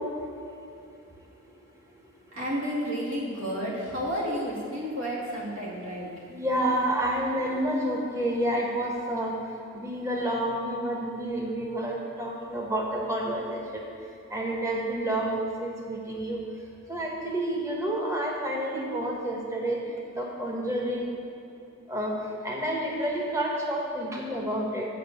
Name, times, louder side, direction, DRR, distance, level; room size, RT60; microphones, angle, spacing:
voice 1, 2.3-6.1, equal, 65° right, -4 dB, 2.2 m, -31 dB
voice 2, 6.3-9.4 9.7-13.8 14.3-16.4 16.9-19.8 20.1-21.2 21.9-22.1 22.4-24.8, right 1 dB, 15° right, -2 dB, 1.2 m, -29 dB
7.6 x 5.5 x 6.8 m, 2.7 s
head